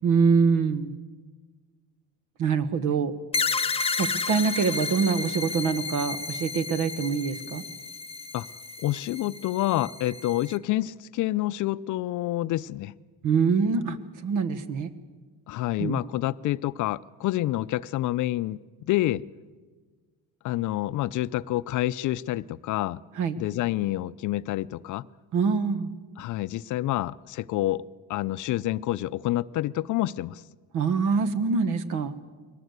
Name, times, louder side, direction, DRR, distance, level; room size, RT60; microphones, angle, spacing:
voice 1, 0.0-0.9 2.4-3.1 4.0-7.6 13.2-14.0 14.2-14.9 15.8-16.0 23.2-23.4 25.3-25.9 30.7-32.1, right 5 dB, 65° right, 12 dB, 1.4 m, -24 dB
sound 1, 3.3-10.6, left 4 dB, 15° left, 0.6 m, -32 dB
voice 2, 8.8-12.9 15.5-19.2 20.4-23.0 23.4-25.0 26.2-27.8 28.1-30.4, left 15 dB, 60° left, 16 dB, 0.6 m, -28 dB
22.0 x 18.5 x 8.1 m, 1.4 s
cardioid pair, 130°, 34 cm